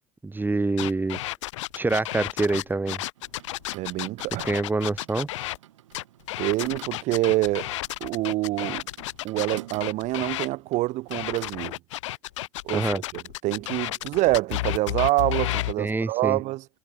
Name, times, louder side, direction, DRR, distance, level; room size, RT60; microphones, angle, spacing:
voice 1, 0.2-1.2 1.8-3.0 4.4-5.3 12.7-13.0 15.8-16.4, right 3 dB, 10° right, 1.8 m, -26 dB
sound 1, 0.8-5.6 5.9-10.5 11.1-15.7, left 16 dB, 80° left, 1.9 m, -32 dB
sound 2, 3.2-11.5, right 13 dB, 85° right, 4.3 m, -49 dB
voice 2, 3.7-4.5 6.4-7.7 8.0-8.9 9.2-11.8 12.6-16.6, right 19 dB, 50° right, 0.6 m, -26 dB
hypercardioid pair, 90°, 16 cm